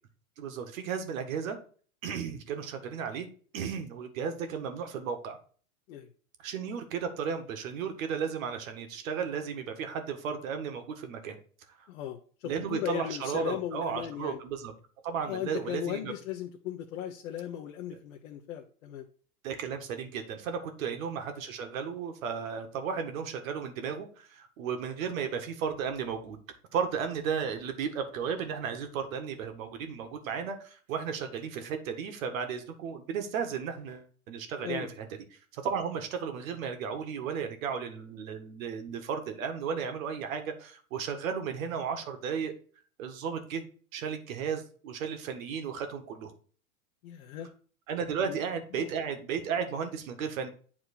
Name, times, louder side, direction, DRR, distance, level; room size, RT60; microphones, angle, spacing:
voice 1, 0.4-1.6 2.0-3.3 3.5-5.4 6.4-11.4 11.8-11.9 12.4-14.7 15.0-16.1 19.4-26.4 26.7-35.1 35.5-42.5 43.0-43.6 43.9-46.3 47.9-50.5, right 6 dB, 65° right, 6 dB, 1.8 m, -34 dB
voice 2, 11.9-14.4 15.3-19.1 34.6-34.9 47.0-47.5 48.2-48.4 48.7-48.9, left 11 dB, 65° left, 2 dB, 1.2 m, -37 dB
8.8 x 4.4 x 4.3 m, 0.43 s
hypercardioid pair, 125°, 43 cm